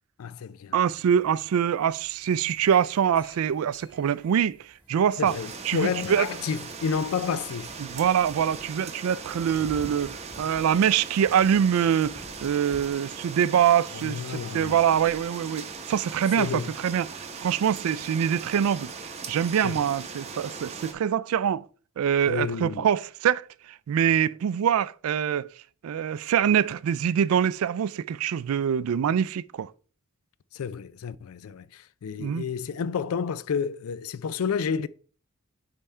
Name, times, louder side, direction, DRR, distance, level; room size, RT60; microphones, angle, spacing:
voice 1, 0.2-0.7 5.2-7.7 14.0-14.8 16.4-16.7 19.6-19.8 22.3-22.9 30.5-31.7 32.0-34.9, left 6 dB, 90° left, 0.4 m, -30 dB
voice 2, 0.7-4.6 4.9-5.4 5.6-6.3 7.8-18.9 19.3-21.7 22.0-25.5 25.8-29.7 32.2-32.4, right 8 dB, 85° right, 0.3 m, -24 dB
sound 1, 1.1-12.8, equal, 10° right, 1.8 m, -51 dB
sound 2, 5.2-20.9, right 5 dB, 30° right, 0.7 m, -39 dB
5.5 x 4.8 x 4.3 m
head